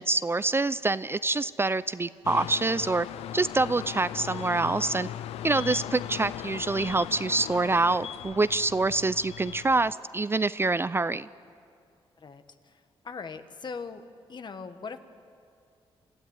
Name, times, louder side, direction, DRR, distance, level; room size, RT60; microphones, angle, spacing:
voice 1, 0.0-3.1 3.3-5.1 5.4-11.3, right 3 dB, 25° right, 16 dB, 0.5 m, -26 dB
sound 1, 2.2-9.9, left 11 dB, 90° left, 0.5 m, -38 dB
voice 2, 12.2-14.0 14.3-15.0, left 5 dB, 50° left, 9 dB, 1.5 m, -40 dB
28.0 x 13.5 x 9.5 m, 2.4 s
cardioid pair, 75°, 10 cm